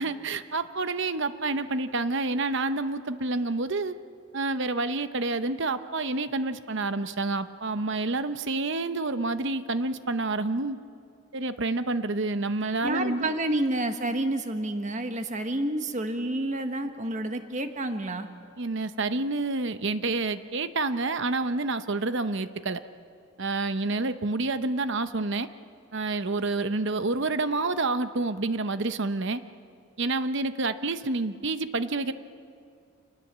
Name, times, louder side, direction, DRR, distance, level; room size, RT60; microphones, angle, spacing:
voice 1, 0.0-3.9 4.3-10.8 11.3-13.3 18.6-22.8 23.4-25.5 25.9-29.4 30.0-32.1, right 3 dB, 55° right, 11 dB, 0.8 m, -28 dB
voice 2, 12.8-18.3, right 1 dB, 35° right, 7 dB, 1.3 m, -29 dB
27.5 x 19.5 x 7.4 m, 2.4 s
head